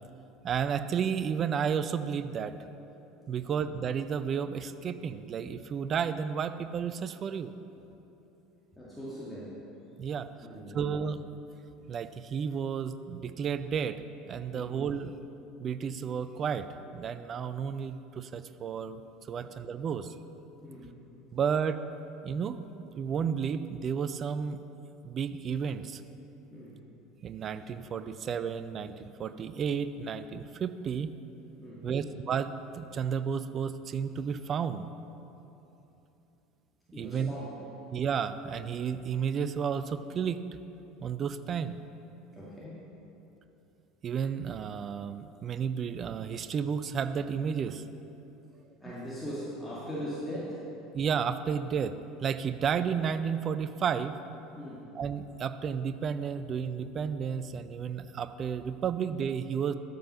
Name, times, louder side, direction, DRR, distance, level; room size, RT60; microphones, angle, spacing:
voice 1, 0.4-2.5 3.3-7.5 10.0-10.3 10.7-11.2 11.9-15.1 15.6-16.7 16.9-20.1 21.3-21.8 22.2-22.6 23.0-24.6 25.0-26.0 27.2-31.1 31.8-34.9 37.0-37.3 37.9-40.4 41.0-41.8 44.0-47.8 50.9-51.9 52.2-54.2 55.0-59.7, right 7 dB, 35° right, 12 dB, 0.4 m, -32 dB
voice 2, 8.7-9.6 10.4-10.8 14.5-14.7 19.4-19.5 20.6-21.0 26.5-26.8 31.6-32.1 36.9-37.7 42.3-42.9 48.8-50.7 54.6-54.9, equal, 5° left, -8 dB, 2.0 m, -40 dB
12.5 x 5.4 x 5.6 m, 3.0 s
figure-of-eight pair, 70°, 0 cm